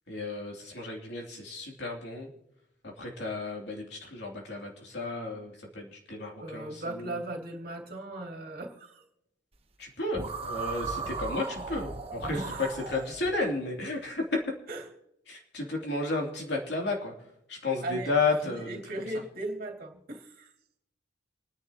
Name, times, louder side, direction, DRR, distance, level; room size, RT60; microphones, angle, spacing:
voice 1, 0.1-2.3 3.0-7.2 9.8-14.4 15.3-17.1 17.5-18.8, left 3 dB, 60° left, 0 dB, 3.1 m, -32 dB
voice 2, 6.4-9.0 12.3-12.8 14.7-14.8 17.8-20.5, right 1 dB, 50° right, 2 dB, 2.7 m, -38 dB
sound 1, 10.1-13.3, right 4 dB, 30° right, 1.1 m, -36 dB
27.5 x 10.5 x 3.0 m, 0.82 s
head